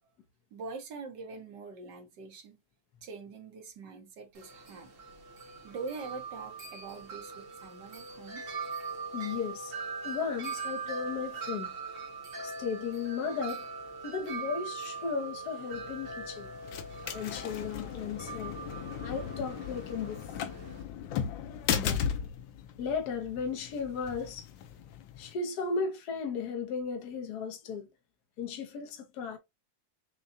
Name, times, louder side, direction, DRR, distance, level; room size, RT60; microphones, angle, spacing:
voice 1, 0.5-2.6 3.0-4.9 5.6-8.4, right 4 dB, 70° right, 1.5 m, -43 dB
Wind chime, 4.4-20.8, right 4 dB, 50° right, 1.2 m, -41 dB
voice 2, 9.1-9.7 10.0-11.7 12.4-13.7 14.0-16.5 17.1-18.6 19.0-20.5 21.7-22.0 22.8-24.5 25.2-27.9 28.4-29.4, left 5 dB, 60° left, 1.4 m, -35 dB
sound 1, 15.7-25.3, left 8 dB, 85° left, 1.4 m, -37 dB
6.7 x 2.3 x 2.7 m
omnidirectional pair, 2.0 m